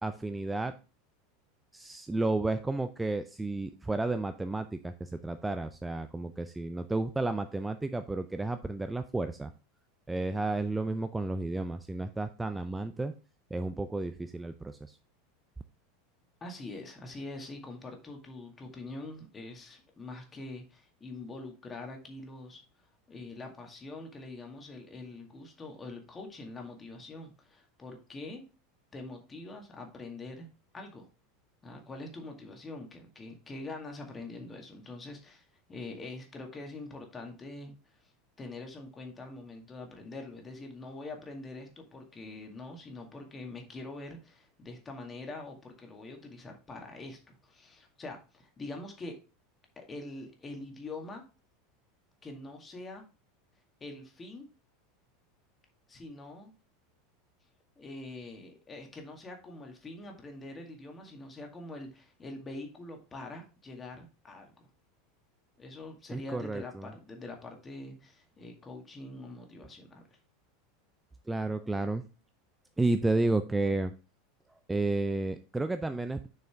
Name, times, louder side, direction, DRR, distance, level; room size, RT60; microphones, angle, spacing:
voice 1, 0.0-0.7 1.7-9.5 10.1-13.1 13.5-15.0 66.1-66.9 71.3-72.0 72.8-73.9 74.7-76.3, right 2 dB, 10° right, 9 dB, 0.5 m, -32 dB
voice 2, 16.4-28.4 28.9-30.5 30.7-31.1 31.6-38.1 38.4-49.2 49.8-51.2 52.2-53.0 53.8-54.5 55.9-56.5 57.8-64.7 65.6-70.2, left 2 dB, 20° left, 3 dB, 2.1 m, -44 dB
6.6 x 6.4 x 3.5 m, 0.33 s
figure-of-eight pair, 80°, 0 cm